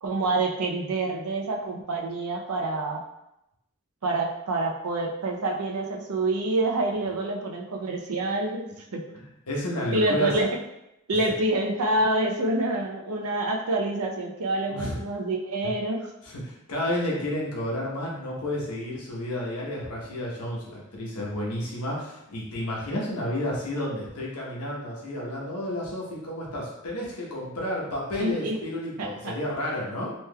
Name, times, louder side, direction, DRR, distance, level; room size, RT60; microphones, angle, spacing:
voice 1, 0.0-3.0 4.0-9.0 9.9-10.5 11.1-16.1 28.2-28.6 29.0-29.3, right 2 dB, 75° right, 2 dB, 0.5 m, -27 dB
voice 2, 9.1-10.3 14.7-15.0 15.6-15.7 16.2-30.1, left 1 dB, 85° left, -3 dB, 0.9 m, -31 dB
3.3 x 3.0 x 2.2 m, 0.87 s
head